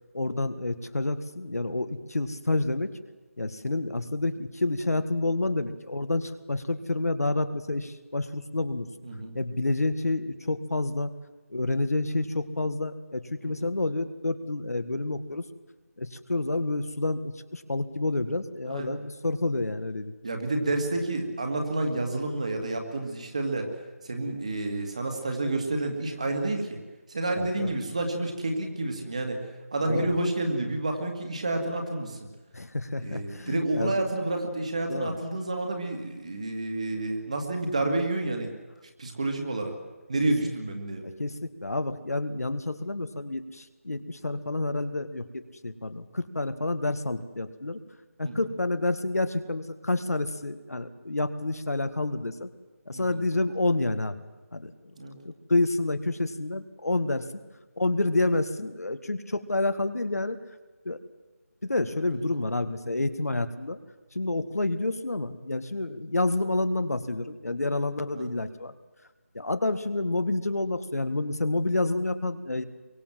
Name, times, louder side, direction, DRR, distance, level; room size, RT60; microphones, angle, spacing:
voice 1, 0.1-2.9 3.4-8.9 9.3-11.1 11.5-15.5 16.0-20.2 27.4-27.7 29.9-30.2 32.5-33.9 34.9-35.2 40.2-40.5 41.0-47.8 48.2-52.5 52.9-54.2 54.5-54.9 55.2-57.3 57.8-60.4 60.9-61.0 61.6-63.8 64.1-68.7 69.3-72.6, left 2 dB, 75° left, 10 dB, 1.9 m, -29 dB
voice 2, 9.0-9.4 13.4-13.5 18.7-18.9 20.2-23.7 24.0-26.8 27.1-29.4 29.7-32.2 33.0-38.6 39.0-39.8 40.1-41.0 48.2-48.5 52.9-53.2 55.0-55.2 62.1-62.2 68.1-68.3, right 2 dB, 25° right, 4 dB, 2.2 m, -29 dB
24.5 x 23.5 x 7.6 m, 1.2 s
figure-of-eight pair, 180°, 8 cm